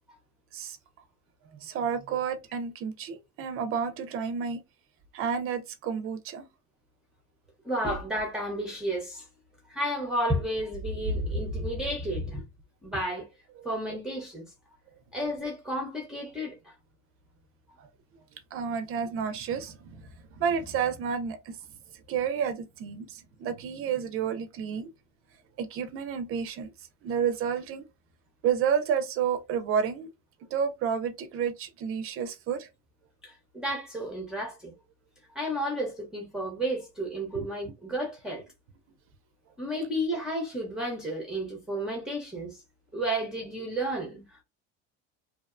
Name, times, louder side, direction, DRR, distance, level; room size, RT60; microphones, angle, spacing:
voice 1, 1.5-4.6 5.1-6.5 17.8-17.9 18.5-20.1 20.4-21.6 21.9-24.9 25.6-26.7 27.0-27.8 28.4-30.1 30.5-32.7 37.3-37.5, right 7 dB, 45° right, 0.5 m, -30 dB
voice 2, 7.6-9.3 9.7-12.4 12.8-13.3 13.6-14.4 15.1-16.7 33.2-34.7 35.3-38.4 39.6-42.6 42.9-44.4, equal, ahead, 0.7 m, -32 dB
2.8 x 2.0 x 2.4 m
cardioid pair, 135°, 31 cm